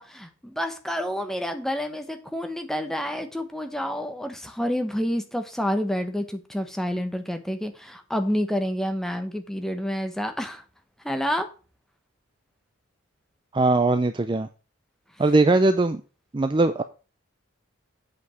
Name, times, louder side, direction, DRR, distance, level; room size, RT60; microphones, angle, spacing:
voice 1, 0.0-10.6 11.0-11.5, equal, ahead, 6 dB, 1.0 m, -29 dB
voice 2, 13.5-14.5 15.2-16.0 16.3-16.8, right 2 dB, 20° right, 10 dB, 0.4 m, -20 dB
8.4 x 5.2 x 6.1 m, 0.34 s
head